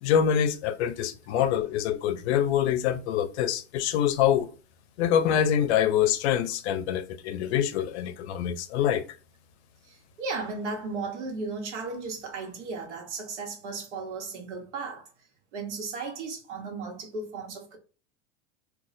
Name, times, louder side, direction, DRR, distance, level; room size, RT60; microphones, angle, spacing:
voice 1, 0.0-4.5 5.0-9.0, left 9 dB, 70° left, 0.5 m, -25 dB
voice 2, 9.8-15.1 15.5-17.8, right 4 dB, 80° right, 1.0 m, -35 dB
2.3 x 2.0 x 3.8 m
hypercardioid pair, 100°, 35 cm